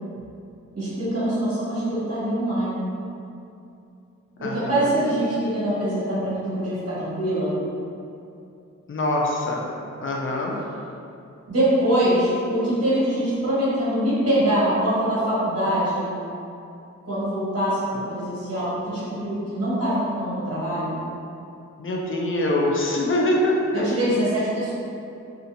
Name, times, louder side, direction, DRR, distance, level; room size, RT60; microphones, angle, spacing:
voice 1, 0.7-2.9 4.4-7.5 11.5-16.1 17.0-20.9 23.7-24.7, right 1 dB, 50° right, -11 dB, 1.5 m, -24 dB
voice 2, 4.4-4.9 8.9-9.7 10.0-10.5 21.8-23.9, left 1 dB, 40° left, -2 dB, 0.5 m, -24 dB
2.6 x 2.4 x 2.7 m, 2.6 s
cardioid pair, 60°, 32 cm